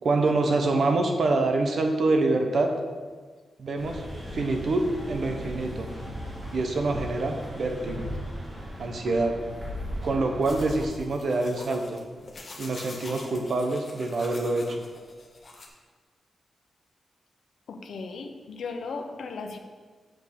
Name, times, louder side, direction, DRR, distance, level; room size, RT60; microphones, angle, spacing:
voice 1, 0.0-2.8 3.6-4.0 4.3-5.9 6.5-8.1 8.8-9.4 10.0-12.0 12.6-14.8, right 2 dB, 50° right, 4 dB, 1.0 m, -26 dB
sound 1, 3.7-10.9, equal, 25° right, 2.0 m, -37 dB
sound 2, 10.4-15.7, left 2 dB, 40° left, 1.2 m, -45 dB
voice 2, 17.7-19.6, left 4 dB, 75° left, 5 dB, 0.9 m, -36 dB
6.1 x 5.4 x 6.8 m, 1.4 s
wide cardioid pair, 155°, 0 cm